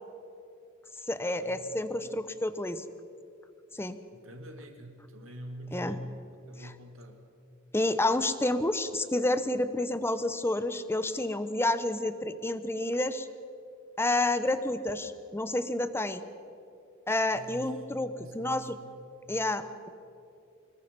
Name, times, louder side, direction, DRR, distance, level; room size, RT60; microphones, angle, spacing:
voice 1, 1.1-2.8 3.7-4.0 5.7-6.0 6.6-6.7 7.7-13.3 14.0-16.2 17.1-18.8 19.3-19.9, left 2 dB, 10° left, 11 dB, 0.9 m, -29 dB
voice 2, 4.1-6.1 6.5-7.2 17.3-17.8 18.2-19.0, equal, 75° right, 4 dB, 2.4 m, -44 dB
25.0 x 21.5 x 5.4 m, 2.6 s
head